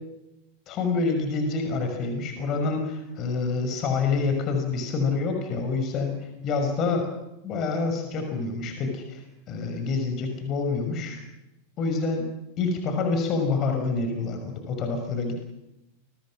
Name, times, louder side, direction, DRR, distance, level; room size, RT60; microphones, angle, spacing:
voice 1, 0.7-6.2 6.4-7.1 7.4-9.2 9.5-11.2 11.8-12.2 12.6-15.5, left 4 dB, 35° left, 5 dB, 5.9 m, -27 dB
29.5 x 23.5 x 6.4 m, 0.89 s
figure-of-eight pair, 90°, 0 cm